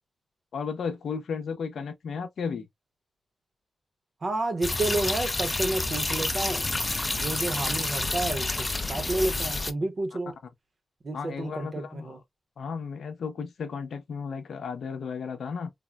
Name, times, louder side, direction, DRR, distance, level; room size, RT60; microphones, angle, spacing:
voice 1, 0.5-2.7 11.1-12.2 12.6-15.7, left 6 dB, 80° left, 0.6 m, -34 dB
voice 2, 4.2-6.7 7.1-10.3 11.0-12.2, right 2 dB, 40° right, 0.8 m, -30 dB
sound 1, 4.6-9.7, left 2 dB, 20° left, 0.4 m, -29 dB
3.5 x 2.0 x 2.3 m
wide cardioid pair, 115°, 0 cm